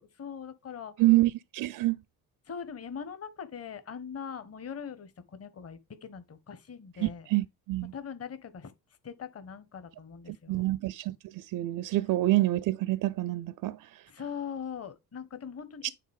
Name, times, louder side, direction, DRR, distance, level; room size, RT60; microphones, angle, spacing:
voice 1, 0.0-1.1 2.4-7.3 7.9-8.7 9.0-10.7 14.1-15.8, left 7 dB, 30° left, 1.3 m, -41 dB
voice 2, 1.0-2.0 7.0-7.9 10.5-14.0 15.8-15.9, right 17 dB, 50° right, 0.5 m, -27 dB
9.2 x 4.1 x 3.5 m
hypercardioid pair, 50°, 45 cm